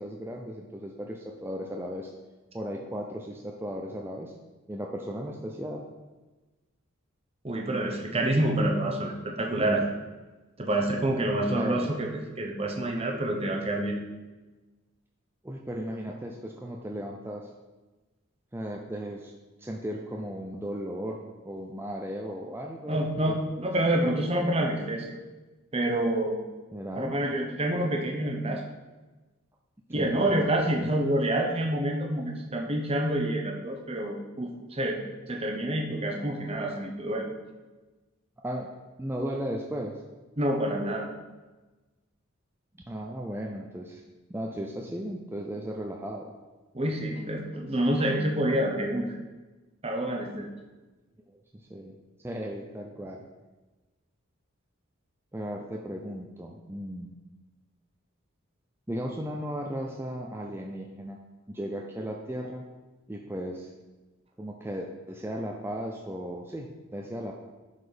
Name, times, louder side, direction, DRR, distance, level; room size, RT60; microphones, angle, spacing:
voice 1, 0.0-2.1 2.5-4.3 4.7-5.9 11.5-11.9 15.4-17.5 18.5-19.3 19.6-23.4 26.7-27.2 29.9-30.1 30.7-31.0 38.4-38.7 39.0-40.0 42.9-44.0 44.3-46.3 51.3-51.9 52.2-53.2 55.3-57.2 58.9-61.2 61.5-62.6 63.1-63.7 64.4-67.4, equal, 10° right, 0 dB, 0.5 m, -36 dB
voice 2, 7.4-9.9 10.6-12.1 12.4-14.0 22.9-25.1 25.7-26.4 26.9-28.6 29.9-35.0 35.3-37.3 40.4-41.1 46.7-49.1 49.8-50.5, right 1 dB, 25° right, 1 dB, 0.9 m, -27 dB
11.0 x 4.2 x 5.0 m, 1.2 s
head